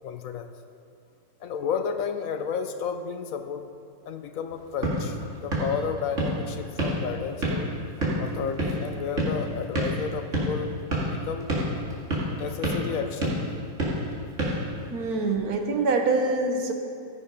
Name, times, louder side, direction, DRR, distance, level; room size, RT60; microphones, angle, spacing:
voice 1, 0.0-0.5 1.4-3.7 4.1-7.7 8.2-11.6 12.4-13.5, left 6 dB, 70° left, 8 dB, 0.8 m, -32 dB
sound 1, 4.5-15.3, equal, 45° right, 2.4 m, -30 dB
voice 2, 14.9-16.7, right 3 dB, 60° right, 4 dB, 1.5 m, -25 dB
14.5 x 6.7 x 5.4 m, 2.4 s
omnidirectional pair, 1.9 m